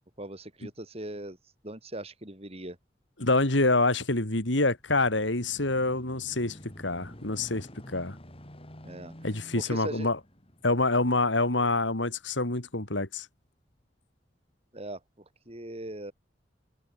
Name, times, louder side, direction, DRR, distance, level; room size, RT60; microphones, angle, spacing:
voice 1, 0.2-1.4 1.6-2.8 8.8-9.1 9.5-10.1 14.7-15.0 15.5-16.1, right 1 dB, 35° right, 6.2 m, -39 dB
voice 2, 3.2-6.6 6.8-7.7 7.9-8.2 9.2-10.2 10.6-13.3, left 2 dB, 90° left, 3.9 m, -26 dB
sound 1, 4.4-13.1 13.7-13.8, equal, 30° left, 6.3 m, -50 dB
head